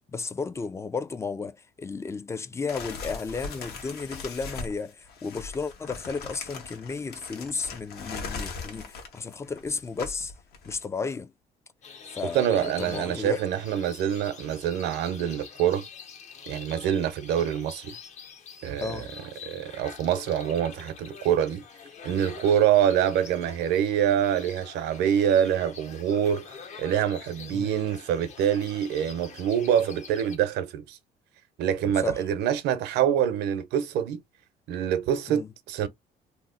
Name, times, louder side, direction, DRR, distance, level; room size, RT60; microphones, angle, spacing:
voice 1, 0.1-10.3 10.6-11.3 12.1-13.4 18.8-19.1 27.5-27.7 32.0-32.2 35.3-35.5, left 4 dB, 15° left, 0.3 m, -33 dB
sound 1, 2.7-10.9, left 4 dB, 70° left, 1.1 m, -39 dB
sound 2, 11.8-30.4, left 6 dB, 45° left, 0.7 m, -45 dB
voice 2, 12.3-15.9 16.5-17.9 18.6-19.0 19.4-21.6 22.0-31.0 31.6-34.2 34.7-35.9, right 9 dB, 80° right, 0.7 m, -25 dB
2.9 x 2.0 x 3.7 m
cardioid pair, 110°, 17 cm